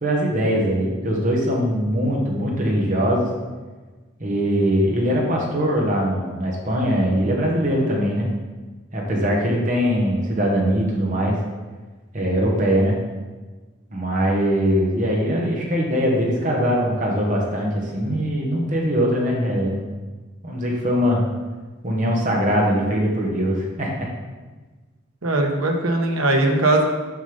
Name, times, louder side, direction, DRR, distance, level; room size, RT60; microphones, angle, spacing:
voice 1, 0.0-3.3 4.2-8.3 8.9-11.4 12.1-13.0 13.9-19.8 20.4-21.2 21.8-24.1, equal, 40° right, -2 dB, 1.5 m, -21 dB
voice 2, 25.2-26.8, right 2 dB, 90° right, 2 dB, 1.2 m, -19 dB
7.4 x 5.4 x 5.3 m, 1.3 s
head